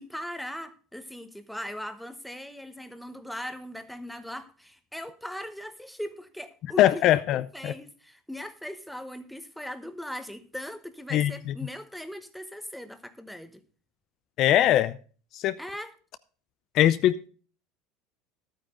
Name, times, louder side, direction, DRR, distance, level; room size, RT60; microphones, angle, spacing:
voice 1, 0.0-7.2 7.5-13.6 15.6-15.9, equal, ahead, 1.1 m, -39 dB
voice 2, 6.8-7.7 11.1-11.5 14.4-15.0 15.3-15.6 16.7-17.3, left 12 dB, 50° left, 0.5 m, -22 dB
12.0 x 9.0 x 3.8 m
supercardioid pair, 115°, 0 cm